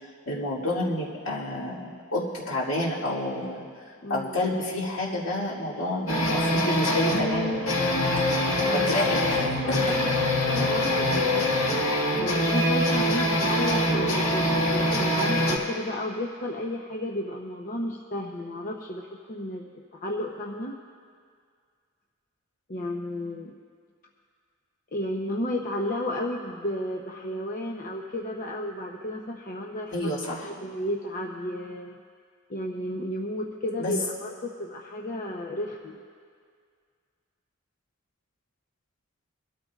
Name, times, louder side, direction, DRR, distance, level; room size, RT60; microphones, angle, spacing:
voice 1, 0.3-3.6 4.1-7.7 8.7-9.4 9.7-10.0 29.9-30.5 33.8-34.0, left 1 dB, 65° left, -4 dB, 2.3 m, -29 dB
voice 2, 4.0-4.4 8.0-10.1 10.5-11.6 12.2-19.6 19.9-20.7 22.7-23.6 24.9-30.2 30.4-32.0 32.5-36.0, left 1 dB, 40° left, -1 dB, 0.8 m, -33 dB
sound 1, 6.1-15.6, left 1 dB, 85° left, 1.8 m, -24 dB
23.5 x 13.0 x 2.4 m, 2.1 s
head